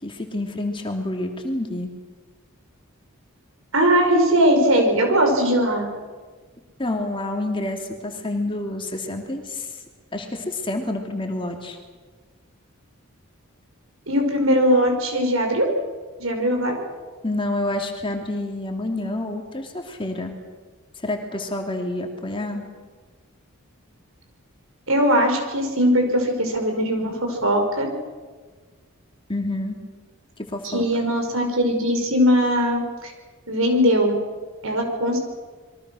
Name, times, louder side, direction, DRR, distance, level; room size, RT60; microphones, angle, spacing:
voice 1, 0.0-1.9 6.8-9.8 10.1-11.8 17.2-20.3 21.0-22.6 29.3-29.8 30.4-30.8, left 1 dB, 25° left, 3 dB, 2.8 m, -28 dB
voice 2, 3.7-5.9 14.1-15.7 16.2-16.8 24.9-27.9 30.6-33.1 33.5-34.2 34.6-35.2, equal, 70° right, 3 dB, 5.6 m, -20 dB
27.5 x 23.0 x 6.4 m, 1.4 s
head